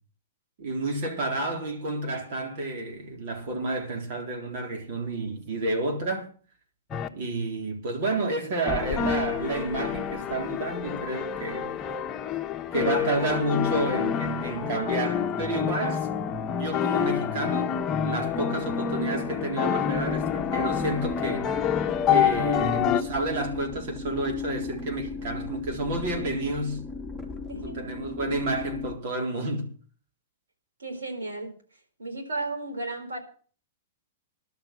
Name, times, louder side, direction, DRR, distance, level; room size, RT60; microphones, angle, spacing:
voice 1, 0.6-6.3 7.1-11.7 12.7-16.1 16.6-26.8 27.6-29.7, right 2 dB, 55° right, 3.8 m, -30 dB
sound 1, 6.9-7.1 8.7-23.0, left 8 dB, 25° left, 1.1 m, -28 dB
sound 2, 19.9-29.0, left 4 dB, 10° right, 3.5 m, -37 dB
voice 2, 30.8-31.5 32.0-33.2, right 2 dB, 80° right, 4.3 m, -34 dB
12.0 x 7.3 x 7.8 m
hypercardioid pair, 110°, 0 cm